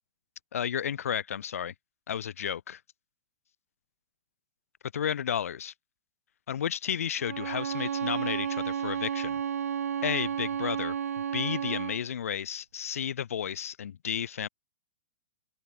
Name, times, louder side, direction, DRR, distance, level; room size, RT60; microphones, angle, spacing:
voice 1, 0.5-1.7 2.1-2.8 4.9-5.7 6.5-9.4 10.0-11.0 11.3-14.5, left 9 dB, 65° left, 2.6 m, -32 dB
Bowed string instrument, 7.2-12.1, right 8 dB, 70° right, 2.0 m, -32 dB
open air
figure-of-eight pair, 105°, 8 cm